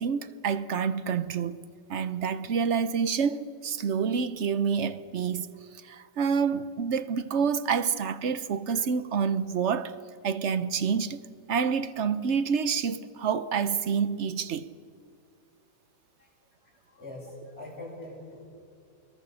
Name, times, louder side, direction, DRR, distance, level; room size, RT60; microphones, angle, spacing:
voice 1, 0.0-1.6 1.9-5.5 5.8-9.9 10.2-11.2 11.5-14.7, right 6 dB, 55° right, 0.9 m, -28 dB
voice 2, 16.6-18.5, left 2 dB, 35° left, 8.0 m, -43 dB
26.5 x 22.5 x 7.0 m
omnidirectional pair, 1.9 m